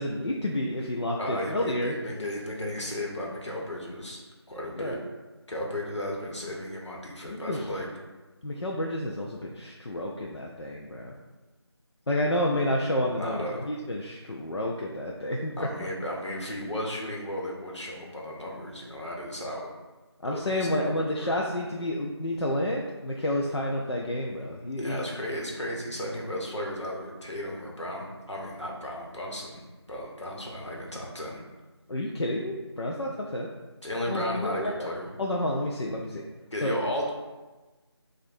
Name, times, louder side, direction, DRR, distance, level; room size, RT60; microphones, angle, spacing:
voice 1, 0.0-1.9 4.8-5.0 7.3-7.7 8.4-11.1 12.1-15.7 20.2-25.0 31.9-33.5 34.1-34.9 35.2-36.2 36.6-36.7, left 1 dB, 70° left, -2 dB, 0.5 m, -30 dB
voice 2, 1.2-4.2 4.5-5.0 5.5-7.9 13.1-13.6 15.6-19.7 20.2-21.3 24.8-29.6 29.9-31.4 33.8-35.1 36.5-37.1, left 1 dB, 85° left, -2 dB, 1.2 m, -34 dB
6.2 x 2.5 x 2.6 m, 1.2 s
figure-of-eight pair, 170°, 15 cm